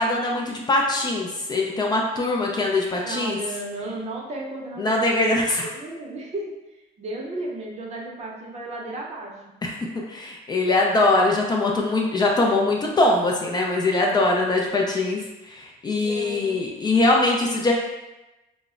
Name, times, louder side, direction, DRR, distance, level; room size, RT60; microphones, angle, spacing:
voice 1, 0.0-3.4 4.8-5.7 9.6-9.7 10.1-17.7, left 2 dB, 25° left, -1 dB, 0.3 m, -22 dB
voice 2, 3.0-9.4 16.0-16.6, right 2 dB, 40° right, -2 dB, 0.6 m, -34 dB
2.0 x 2.0 x 3.5 m, 1.0 s
cardioid pair, 110°, 17 cm